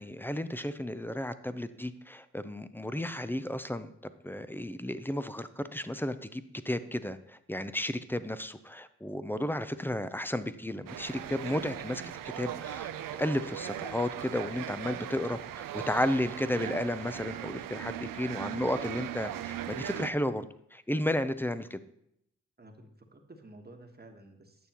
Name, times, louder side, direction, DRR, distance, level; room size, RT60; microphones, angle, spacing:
voice 1, 0.0-12.0 12.4-12.9 13.2-20.4 20.7-21.8, left 1 dB, 5° left, 12 dB, 0.5 m, -33 dB
sound 1, 10.9-20.1, right 11 dB, 75° right, 0.5 m, -39 dB
voice 2, 22.6-24.7, right 2 dB, 30° right, 4 dB, 1.3 m, -52 dB
9.3 x 6.6 x 2.9 m, 0.74 s
cardioid pair, 45°, 34 cm